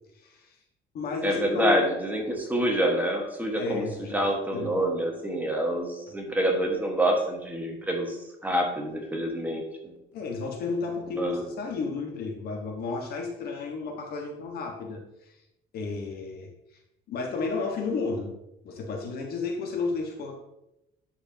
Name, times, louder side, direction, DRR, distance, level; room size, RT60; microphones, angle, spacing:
voice 1, 0.2-0.5 0.9-1.7 3.5-4.7 10.1-15.3 15.7-16.5 17.1-18.3 18.6-20.4, left 4 dB, 65° left, 2 dB, 1.5 m, -32 dB
voice 2, 1.2-3.8 4.1-9.9 11.1-11.4, right 1 dB, 10° right, 1 dB, 1.5 m, -27 dB
10.5 x 4.8 x 2.9 m, 0.88 s
cardioid pair, 110°, 17 cm